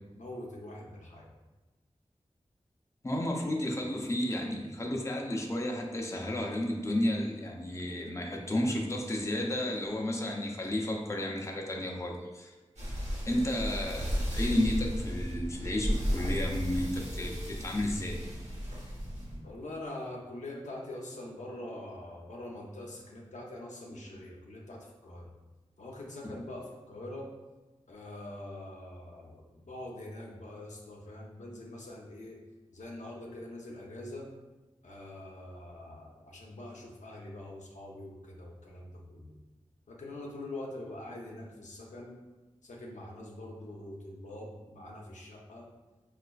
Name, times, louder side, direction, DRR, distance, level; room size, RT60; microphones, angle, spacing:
voice 1, 0.1-1.3 19.4-25.3 25.8-27.3 27.9-32.4 32.7-34.3 34.8-39.4 39.9-42.2 42.6-45.7, left 1 dB, 85° left, -2 dB, 0.5 m, -44 dB
voice 2, 3.0-12.6 13.3-18.2, left 1 dB, 25° left, 0 dB, 0.5 m, -32 dB
sound 1, 12.8-19.4, equal, 65° right, 1.1 m, -34 dB
4.1 x 2.4 x 2.3 m, 1.2 s
cardioid pair, 40°, 12 cm